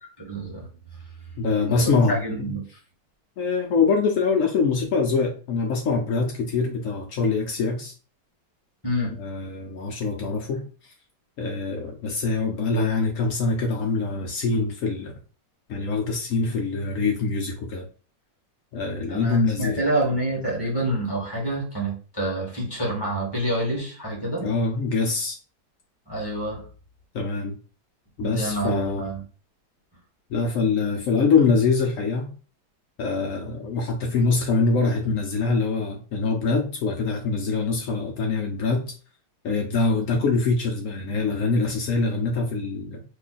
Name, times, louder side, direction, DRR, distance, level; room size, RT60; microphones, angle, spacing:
voice 1, 0.2-0.6 1.7-2.6 8.8-9.1 19.1-24.5 26.1-26.6 28.2-29.2 39.7-39.9, right 1 dB, 15° left, -3 dB, 1.2 m, -27 dB
voice 2, 1.4-2.6 3.4-7.9 9.2-10.9 11.4-15.1 15.7-17.8 18.7-19.8 24.4-25.4 27.1-27.6 28.2-29.1 30.3-32.3 33.0-38.9 39.4-43.0, left 4 dB, 75° left, 1 dB, 0.7 m, -24 dB
3.0 x 2.3 x 3.9 m, 0.38 s
omnidirectional pair, 1.9 m